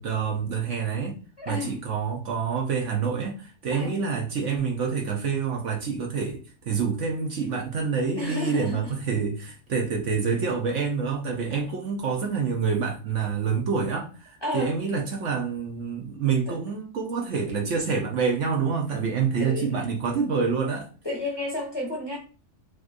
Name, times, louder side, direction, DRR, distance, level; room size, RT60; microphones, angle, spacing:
voice 1, 0.0-1.2 1.5-20.9, right 5 dB, 60° right, 1.0 m, -27 dB
voice 2, 1.4-1.8 3.7-4.0 8.2-8.9 11.5-11.6 14.4-14.7 16.5-16.6 19.4-19.9 21.0-22.2, left 1 dB, 20° left, 0.8 m, -32 dB
4.4 x 3.0 x 2.5 m
omnidirectional pair, 1.5 m